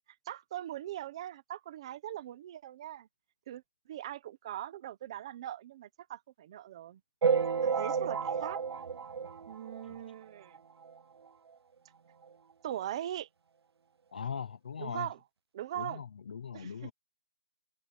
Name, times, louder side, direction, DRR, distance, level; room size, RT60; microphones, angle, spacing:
voice 1, 0.3-3.1 3.5-3.6 3.9-7.0 7.6-8.6 9.5-10.6 12.6-13.3 14.8-15.2 15.5-16.0 16.5-16.9, right 12 dB, 10° right, 0.8 m, -40 dB
sound 1, 7.2-10.1 10.5-10.6 10.8-11.0 11.3-11.4 12.2-12.3 12.8-12.9, right 6 dB, 80° right, 0.4 m, -31 dB
voice 2, 14.1-15.1 15.8-16.9, left 7 dB, 20° left, 0.7 m, -40 dB
hypercardioid pair, 175°, 13 cm